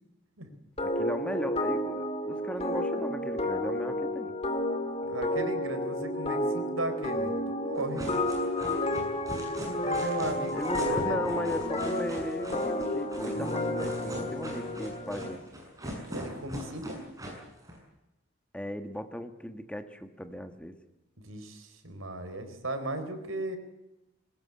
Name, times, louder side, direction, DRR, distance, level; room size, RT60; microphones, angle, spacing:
sound 1, 0.8-15.4, left 1 dB, 30° left, 2.2 m, -31 dB
voice 1, 0.8-4.3 10.5-15.4 18.5-20.7, equal, 5° left, 8 dB, 1.4 m, -37 dB
voice 2, 5.0-8.1 9.8-11.6 16.1-17.0 21.2-23.6, right 1 dB, 90° right, 8 dB, 4.0 m, -36 dB
sound 2, 7.8-17.8, equal, 15° right, 7.0 m, -40 dB
21.5 x 19.0 x 8.6 m, 0.97 s
head